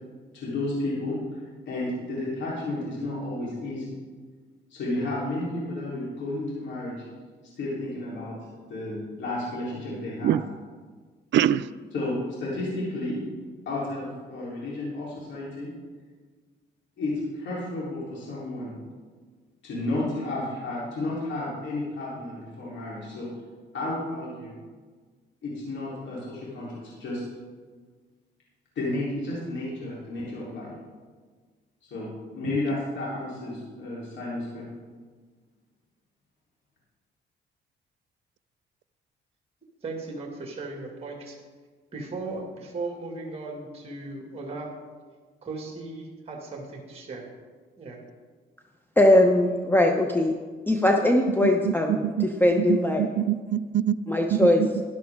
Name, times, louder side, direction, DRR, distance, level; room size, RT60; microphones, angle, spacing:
voice 1, 0.3-1.4 1.7-4.0 4.7-6.9 7.6-8.3 8.7-10.4 11.9-13.2 13.7-15.7 17.0-18.8 19.6-23.3 23.7-24.6 25.4-27.2 28.8-30.7 31.8-34.6, left 2 dB, 70° left, -6 dB, 3.8 m, -32 dB
voice 2, 11.3-11.7 51.4-52.3 52.6-54.0 54.3-54.8, right 10 dB, 65° right, 14 dB, 0.4 m, -25 dB
voice 3, 39.8-41.4 41.9-44.7 45.4-47.3 47.8-48.0, right 3 dB, 30° right, 1 dB, 2.2 m, -37 dB
voice 4, 49.0-50.3 50.7-53.0 54.1-54.6, left 1 dB, 10° left, 2 dB, 0.9 m, -20 dB
12.5 x 11.0 x 3.7 m, 1.5 s
cardioid pair, 90°, 20 cm